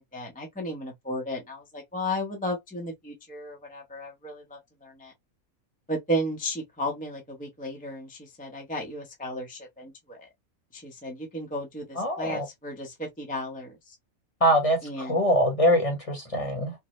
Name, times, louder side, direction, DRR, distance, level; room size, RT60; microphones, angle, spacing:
voice 1, 0.1-5.1 5.9-10.3 10.7-14.0 14.8-15.2, equal, 10° left, 0.7 m, -34 dB
voice 2, 12.0-12.4 14.4-16.7, equal, 25° left, 1.1 m, -23 dB
4.6 x 2.3 x 3.1 m
omnidirectional pair, 1.5 m